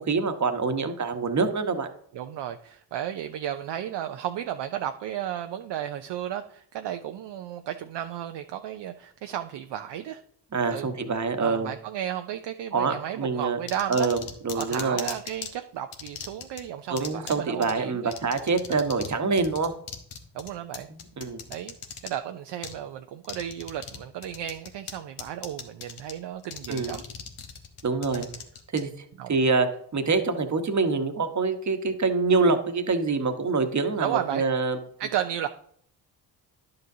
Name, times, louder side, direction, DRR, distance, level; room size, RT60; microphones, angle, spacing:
voice 1, 0.0-1.9 10.5-11.7 12.7-13.6 13.9-15.1 16.9-19.7 21.2-21.4 26.7-27.0 27.8-28.3 28.7-28.9 29.3-34.8, right 4 dB, 35° right, 7 dB, 1.2 m, -25 dB
voice 2, 2.1-10.2 10.7-10.9 11.4-14.1 14.5-18.1 18.7-18.9 20.3-20.9 21.5-21.8 22.0-27.0 28.1-28.3 29.2-29.3 34.0-34.5 35.0-35.5, right 10 dB, 55° right, 7 dB, 0.6 m, -33 dB
sound 1, 13.7-15.5 15.9-16.6 17.0-17.3 17.6-17.7 18.1-19.1 19.4-22.1 22.6-22.7 23.2-24.0 24.2-24.9 25.2-26.1 26.4-28.8, left 7 dB, 75° left, 1.3 m, -37 dB
11.0 x 6.7 x 2.7 m, 0.64 s
supercardioid pair, 50°, 49 cm